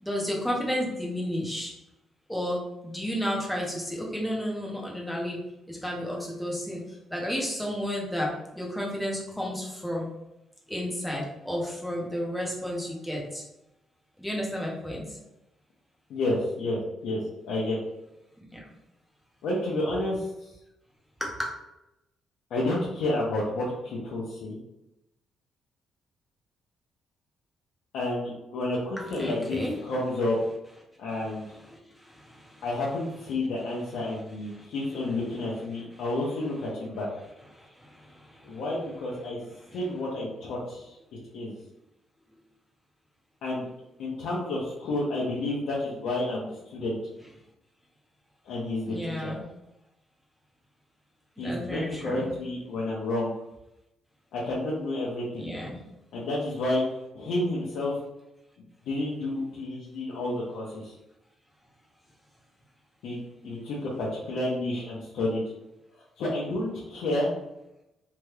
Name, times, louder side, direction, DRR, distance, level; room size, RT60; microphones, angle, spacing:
voice 1, 0.0-1.7 2.3-2.6 2.8-5.4 5.7-6.8 7.1-8.3 8.6-10.1 10.7-13.4 14.2-15.0 21.2-21.5 29.0-29.7 39.7-39.8 48.9-49.4 51.4-52.3 55.4-55.8, equal, 5° left, -3 dB, 0.7 m, -31 dB
voice 2, 16.1-17.8 19.4-20.5 22.5-24.6 27.9-30.4 31.0-31.6 32.6-37.1 38.4-39.4 39.7-41.0 41.3-41.6 43.4-43.7 44.0-47.0 48.4-49.3 51.4-53.3 54.3-55.5 56.1-56.8 57.1-57.9 58.9-60.9 63.0-65.4 66.2-67.3, left 1 dB, 80° left, -5 dB, 0.6 m, -30 dB
2.8 x 2.3 x 3.2 m, 0.89 s
cardioid pair, 165°, 0 cm